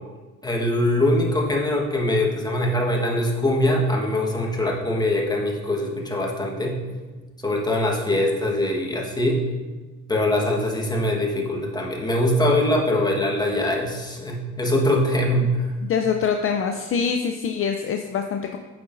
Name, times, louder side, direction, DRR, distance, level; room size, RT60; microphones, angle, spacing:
voice 1, 0.4-6.8 7.4-9.4 10.1-15.7, left 1 dB, 15° left, -1 dB, 1.3 m, -22 dB
voice 2, 15.9-18.6, left 6 dB, 45° left, 5 dB, 0.5 m, -24 dB
8.5 x 5.4 x 2.6 m, 1.3 s
cardioid pair, 90°, 30 cm